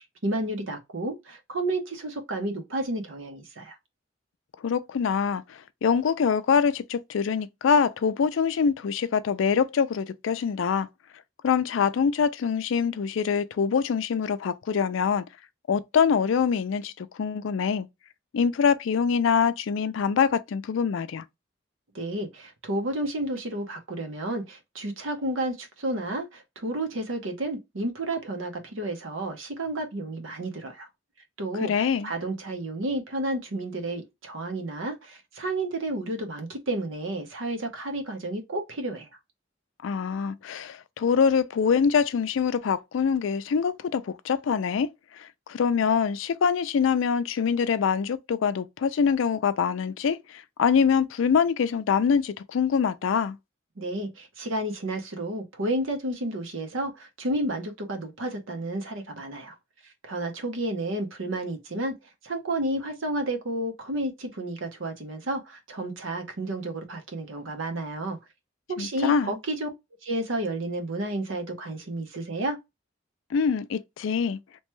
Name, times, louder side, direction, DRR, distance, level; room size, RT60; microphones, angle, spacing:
voice 1, 0.2-3.7 21.9-30.9 31.4-39.1 53.8-59.5 60.0-61.9 62.2-68.2 68.8-69.7 70.0-72.6, right 1 dB, 85° right, 0.8 m, -31 dB
voice 2, 4.6-5.4 5.8-10.9 11.4-15.2 15.7-17.9 18.3-21.2 31.6-32.1 39.8-44.9 45.2-53.4 68.8-69.3 73.3-74.4, left 6 dB, 80° left, 0.4 m, -24 dB
3.0 x 2.2 x 3.0 m
head